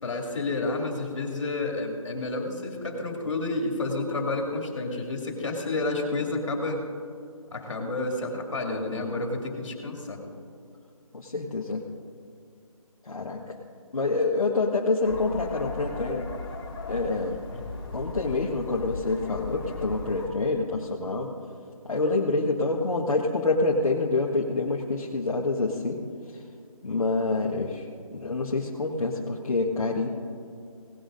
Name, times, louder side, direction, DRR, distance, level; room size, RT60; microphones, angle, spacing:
voice 1, 0.0-6.8 7.5-10.2 17.5-17.6, left 2 dB, 55° left, 1 dB, 2.7 m, -30 dB
voice 2, 11.1-11.8 13.0-13.6 13.9-16.3 16.9-17.4 17.9-21.3 21.8-26.0 26.3-26.4 26.8-27.9 28.1-30.1, left 3 dB, 75° left, -2 dB, 1.4 m, -27 dB
sound 1, 15.0-20.3, left 3 dB, 40° left, 2.3 m, -37 dB
18.5 x 14.0 x 2.6 m, 2.4 s
figure-of-eight pair, 170°, 18 cm